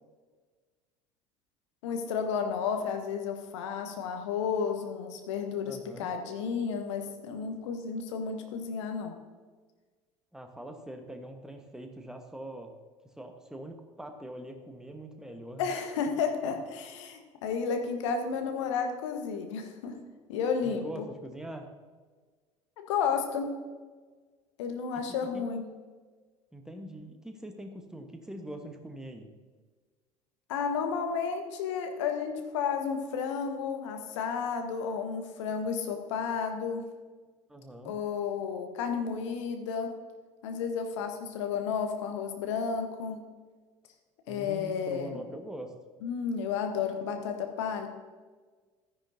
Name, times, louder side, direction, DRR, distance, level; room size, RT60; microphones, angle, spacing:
voice 1, 1.8-9.1 15.6-19.9 20.3-21.0 22.8-23.5 24.6-25.6 30.5-36.8 37.8-39.9 40.4-43.2 44.3-45.2 46.0-47.9, left 6 dB, 65° left, 5 dB, 1.3 m, -32 dB
voice 2, 5.6-6.1 10.3-12.7 13.2-15.7 20.6-21.7 25.3-25.4 26.5-29.3 37.5-37.9 44.3-45.7, right 1 dB, 5° right, 5 dB, 1.2 m, -43 dB
13.0 x 10.0 x 2.7 m, 1.4 s
figure-of-eight pair, 65°, 17 cm